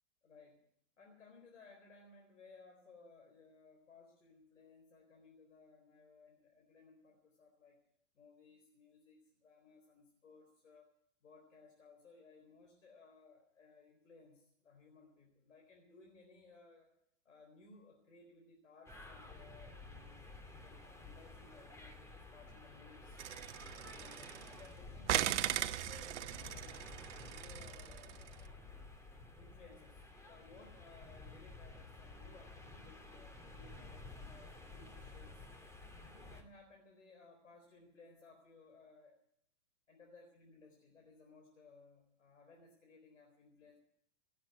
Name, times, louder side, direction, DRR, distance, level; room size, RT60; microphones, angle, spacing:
voice 1, 0.2-0.6 1.0-7.8 8.1-10.9 11.2-16.9 17.2-23.2 23.8-26.9 27.2-28.6 29.4-35.4 36.0-39.2 39.9-43.8, left 4 dB, 90° left, 1 dB, 4.3 m, -61 dB
sound 1, 18.9-36.4, left 3 dB, 10° left, 2.5 m, -53 dB
sound 2, 23.2-24.7 25.1-28.3, right 12 dB, 70° right, 1.0 m, -38 dB
18.0 x 8.1 x 9.7 m, 0.72 s
hypercardioid pair, 120°, 37 cm